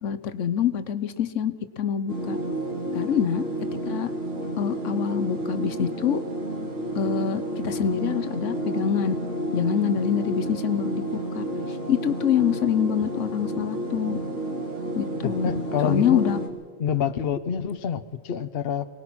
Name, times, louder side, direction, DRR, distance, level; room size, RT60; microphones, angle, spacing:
voice 1, 0.0-2.4 2.9-3.4 3.9-4.1 4.6-6.2 7.0-9.2 9.5-14.2 14.9-15.5 15.8-16.4, left 8 dB, 70° left, 11 dB, 1.1 m, -25 dB
sound 1, 2.1-16.5, right 1 dB, 65° right, 3.4 m, -30 dB
voice 2, 15.2-16.2 16.8-18.8, left 8 dB, 55° left, 11 dB, 0.9 m, -27 dB
24.5 x 19.5 x 6.0 m, 1.4 s
omnidirectional pair, 1.3 m